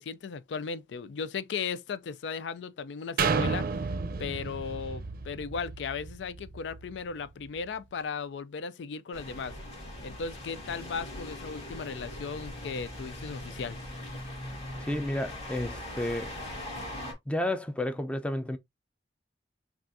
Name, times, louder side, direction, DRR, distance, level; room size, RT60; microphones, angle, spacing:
voice 1, 0.0-3.9 4.2-9.5 10.0-13.8, left 5 dB, 80° left, 0.4 m, -36 dB
sound 1, 3.2-7.0 7.5-7.6, right 4 dB, 55° right, 0.5 m, -32 dB
sound 2, 9.1-17.1, left 1 dB, 35° left, 1.8 m, -40 dB
voice 2, 14.8-16.3 17.3-18.6, left 1 dB, 5° left, 0.4 m, -31 dB
5.9 x 2.4 x 2.6 m
head